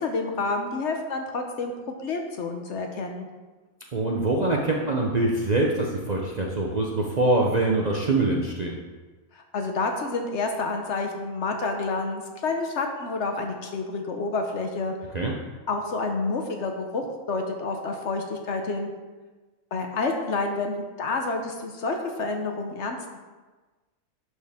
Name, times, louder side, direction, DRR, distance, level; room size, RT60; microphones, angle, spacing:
voice 1, 0.0-1.7 2.0-3.3 9.3-14.9 15.7-18.9 19.7-23.2, left 3 dB, 60° left, 4 dB, 1.0 m, -29 dB
voice 2, 3.9-8.7 15.1-15.3, right 2 dB, 45° right, -1 dB, 0.6 m, -24 dB
11.0 x 4.6 x 3.5 m, 1.3 s
omnidirectional pair, 1.5 m